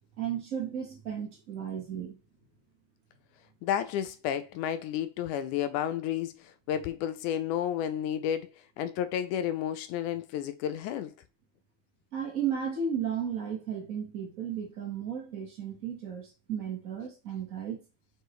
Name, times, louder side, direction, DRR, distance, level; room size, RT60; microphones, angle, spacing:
voice 1, 0.2-2.2 12.1-17.8, right 7 dB, 80° right, 0.7 m, -34 dB
voice 2, 3.6-8.5 8.8-11.1, left 10 dB, 80° left, 1.9 m, -31 dB
6.7 x 4.8 x 3.1 m
omnidirectional pair, 3.8 m